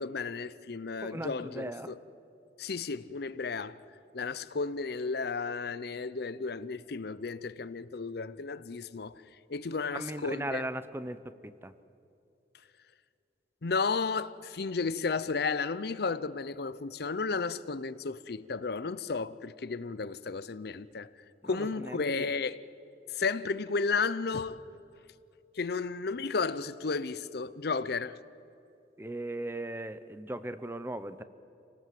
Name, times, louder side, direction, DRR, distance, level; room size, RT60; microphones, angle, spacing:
voice 1, 0.0-1.9 2.6-3.8 4.1-9.2 9.5-10.7 13.6-21.1 21.4-22.6 23.1-24.6 25.6-28.2, left 4 dB, 60° left, 0.6 m, -33 dB
voice 2, 1.0-1.9 9.9-11.2 11.4-11.7 21.4-22.3 29.0-31.2, right 1 dB, 15° right, 0.7 m, -38 dB
28.5 x 18.5 x 7.7 m
head